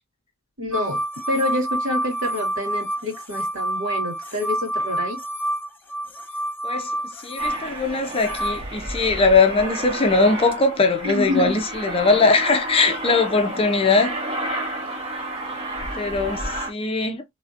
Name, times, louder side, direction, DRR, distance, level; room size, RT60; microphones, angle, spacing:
voice 1, 0.6-1.0 1.3-5.2 11.0-11.6, left 1 dB, 75° right, 2.0 m, -27 dB
sound 1, 0.7-8.6, right 1 dB, 10° left, 1.0 m, -28 dB
voice 2, 6.6-14.2 15.9-17.2, left 3 dB, 30° left, 0.5 m, -20 dB
Aircraft, 7.4-16.7, right 1 dB, 30° right, 1.2 m, -31 dB
3.3 x 2.8 x 2.5 m
head